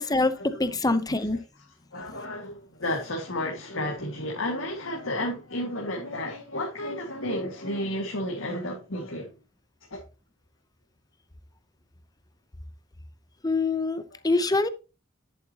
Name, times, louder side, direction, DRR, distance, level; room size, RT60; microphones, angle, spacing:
voice 1, 0.0-0.3 0.6-1.4 13.4-14.7, left 3 dB, 20° left, 0.7 m, -24 dB
voice 2, 1.9-9.3 9.9-10.0, left 1 dB, 85° left, 2.0 m, -32 dB
11.0 x 7.8 x 2.9 m
head